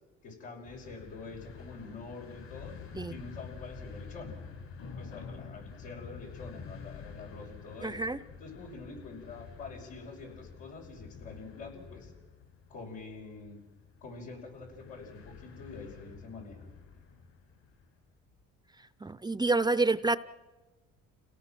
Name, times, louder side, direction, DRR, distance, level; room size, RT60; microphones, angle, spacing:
voice 1, 0.2-2.8 3.1-4.4 5.0-8.0 8.4-12.1 12.7-13.6 14.0-16.7, left 3 dB, 90° left, -2 dB, 5.8 m, -46 dB
sound 1, 0.6-17.9, left 5 dB, 70° left, 7.7 m, -48 dB
voice 2, 7.8-8.2 19.0-20.2, right 3 dB, 15° right, 15 dB, 0.6 m, -28 dB
29.5 x 18.0 x 6.1 m, 1.2 s
supercardioid pair, 80°, 30 cm